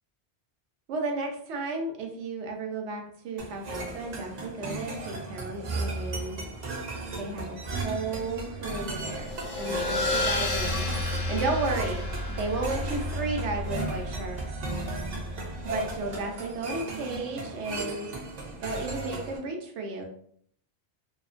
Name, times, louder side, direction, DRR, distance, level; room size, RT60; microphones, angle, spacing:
voice 1, 0.9-6.4 7.2-7.6 7.8-10.8 11.3-14.4 15.6-18.1 18.6-20.0, right 3 dB, 85° right, 2 dB, 0.9 m, -33 dB
sound 1, 3.4-19.4, right 2 dB, 55° right, 0.5 m, -36 dB
sound 2, 9.1-16.2, left 2 dB, 60° left, 0.6 m, -32 dB
2.4 x 2.1 x 2.4 m, 0.64 s
omnidirectional pair, 1.2 m